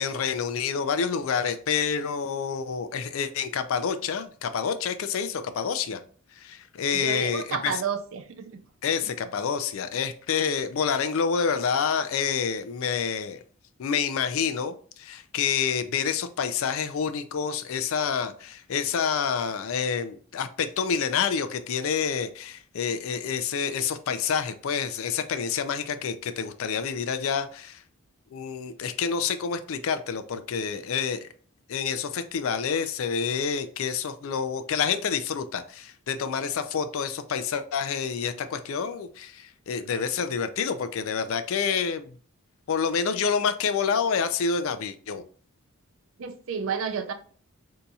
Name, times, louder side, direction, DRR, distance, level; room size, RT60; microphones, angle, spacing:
voice 1, 0.0-6.0 6.3-7.8 8.8-13.4 13.8-27.8 28.3-31.3 31.7-42.1 42.7-45.2, left 6 dB, 70° left, 0.4 m, -28 dB
voice 2, 6.9-8.6 46.2-47.1, right 6 dB, 65° right, 0.5 m, -31 dB
3.9 x 2.7 x 2.3 m
head